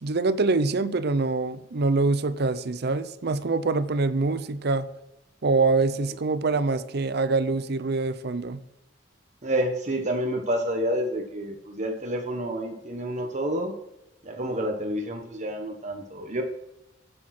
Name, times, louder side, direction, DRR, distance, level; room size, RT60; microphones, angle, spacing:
voice 1, 0.0-4.9 5.4-8.6, right 3 dB, 60° right, 14 dB, 0.6 m, -25 dB
voice 2, 9.4-13.7 14.2-16.4, right 1 dB, 40° right, 2 dB, 1.3 m, -29 dB
8.9 x 8.5 x 6.0 m, 0.89 s
head